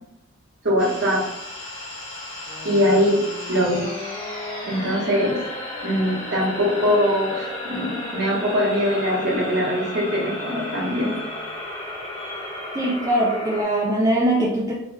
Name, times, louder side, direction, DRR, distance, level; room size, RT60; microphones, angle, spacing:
voice 1, 0.6-1.3 2.6-3.2 3.5-3.9 4.6-5.4 5.8-11.2, equal, 55° right, -4 dB, 1.0 m, -22 dB
sound 1, 0.8-13.6, left 1 dB, 15° left, 1.1 m, -34 dB
sound 2, 2.4-11.7, left 3 dB, 30° left, 0.6 m, -39 dB
voice 2, 12.7-14.7, right 1 dB, 15° right, -5 dB, 0.3 m, -21 dB
3.1 x 2.2 x 3.2 m, 0.83 s
head